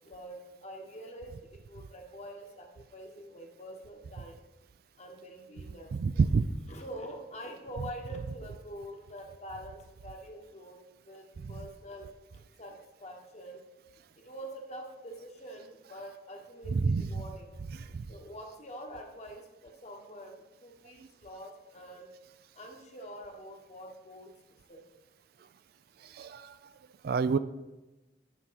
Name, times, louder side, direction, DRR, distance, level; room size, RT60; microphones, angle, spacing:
voice 1, 0.0-4.4 5.0-6.3 6.7-13.6 14.1-17.5 18.1-22.1 22.5-24.3 24.7-24.9, equal, 35° left, 2 dB, 1.1 m, -46 dB
voice 2, 6.0-6.4 11.4-11.5 16.7-17.1 17.9-18.1 26.0-26.6 27.0-27.4, right 4 dB, 55° right, 13 dB, 0.3 m, -27 dB
9.7 x 3.6 x 5.7 m, 1.1 s
head